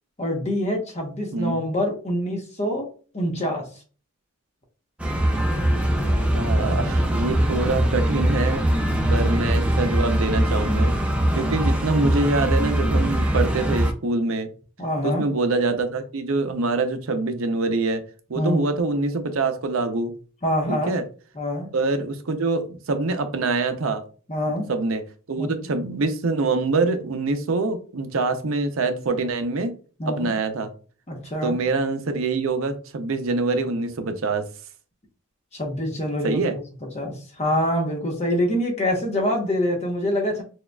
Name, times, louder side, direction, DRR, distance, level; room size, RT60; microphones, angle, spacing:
voice 1, 0.2-2.8 3.1-3.6 9.0-9.5 11.3-11.6 14.8-15.2 18.3-18.6 20.4-20.9 21.3-21.7 24.3-24.7 25.4-25.5 30.0-30.3 31.1-31.5 35.5-36.6 36.9-40.4, equal, 30° left, 1 dB, 1.0 m, -25 dB
sound 1, 5.0-13.9, right 1 dB, 5° right, 0.5 m, -22 dB
voice 2, 6.3-8.7 9.1-10.9 11.3-14.5 15.0-18.0 18.3-20.1 20.7-21.0 21.7-24.0 24.7-29.7 30.1-30.7 31.4-34.5 36.2-36.5, right 3 dB, 75° right, 7 dB, 0.6 m, -25 dB
6.2 x 2.3 x 2.3 m, 0.39 s
head